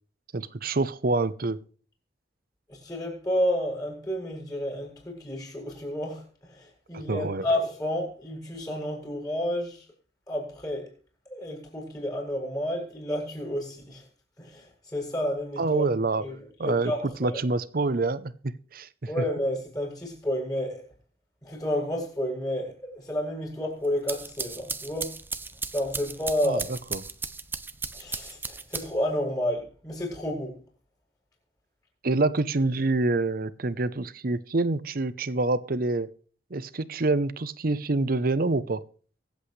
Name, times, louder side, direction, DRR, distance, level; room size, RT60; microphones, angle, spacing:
voice 1, 0.3-1.6 6.9-7.4 15.6-16.2 16.6-16.9 17.2-18.9 26.4-26.6 26.9-27.0 32.0-36.1 36.5-38.8, right 2 dB, 55° right, 0.7 m, -26 dB
voice 2, 2.7-9.9 10.3-10.9 11.3-14.1 14.4-15.9 16.2-17.4 19.1-20.8 21.4-25.2 25.7-26.6 27.9-30.6, left 1 dB, 20° left, 7.3 m, -31 dB
sound 1, 23.8-29.2, right 4 dB, 10° right, 0.7 m, -36 dB
23.5 x 8.3 x 3.3 m
head